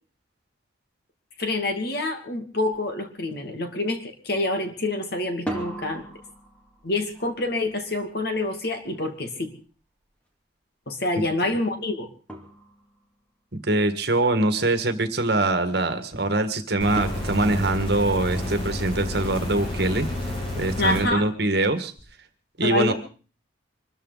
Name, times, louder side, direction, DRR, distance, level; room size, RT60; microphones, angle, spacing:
voice 1, 1.4-6.0 6.8-9.5 10.9-12.1 20.8-21.2 22.6-22.9, left 2 dB, 60° left, 6 dB, 2.4 m, -27 dB
sound 1, 2.7-2.9 3.2-3.8 5.3-10.1 11.7-11.8 12.3-13.2 17.0-18.7, right 1 dB, 5° left, 2.4 m, -40 dB
voice 2, 13.7-20.1 20.6-21.9 22.6-22.9, right 2 dB, 60° right, 9 dB, 1.8 m, -23 dB
sound 2, 16.8-21.0 22.0-22.1, left 1 dB, 30° left, 6.7 m, -30 dB
24.5 x 13.5 x 4.1 m, 0.39 s
head